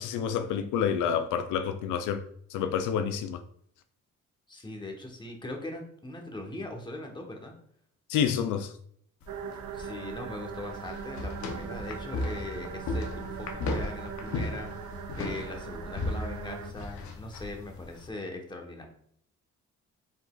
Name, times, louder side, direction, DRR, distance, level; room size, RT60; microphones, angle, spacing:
voice 1, 0.0-2.2 2.5-3.4 8.1-8.7, left 8 dB, 85° left, 0.5 m, -28 dB
voice 2, 4.5-7.5 9.7-14.7 15.2-18.8, left 2 dB, 15° left, 1.1 m, -40 dB
sound 1, 9.2-18.1, left 2 dB, 70° left, 0.9 m, -36 dB
sound 2, 9.3-16.7, right 8 dB, 70° right, 0.5 m, -41 dB
5.2 x 3.8 x 2.4 m
cardioid pair, 90°, 30 cm